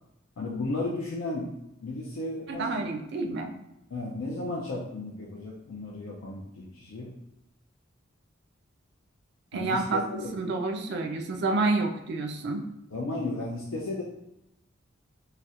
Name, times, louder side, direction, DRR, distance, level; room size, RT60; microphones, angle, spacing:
voice 1, 0.4-2.8 3.9-7.1 9.5-10.3 12.9-14.0, left 2 dB, 90° left, -2 dB, 0.4 m, -34 dB
voice 2, 2.5-3.5 9.5-10.1 10.3-12.7, right 3 dB, 60° right, 4 dB, 0.3 m, -29 dB
4.0 x 2.1 x 2.4 m, 0.87 s
head